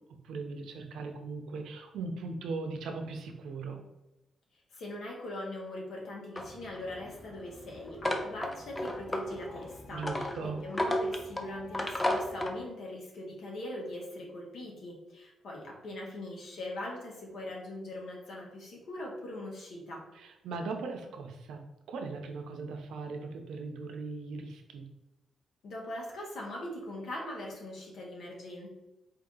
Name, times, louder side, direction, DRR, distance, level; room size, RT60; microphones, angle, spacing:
voice 1, 0.0-3.8 9.9-10.6 20.1-24.9, right 4 dB, 85° right, 4 dB, 0.6 m, -39 dB
voice 2, 4.7-20.0 25.6-28.7, left 1 dB, 70° left, -2 dB, 1.3 m, -41 dB
sound 1, 6.4-12.6, left 1 dB, 15° left, 0.5 m, -34 dB
4.6 x 2.8 x 3.8 m, 0.95 s
cardioid pair, 110°, 0 cm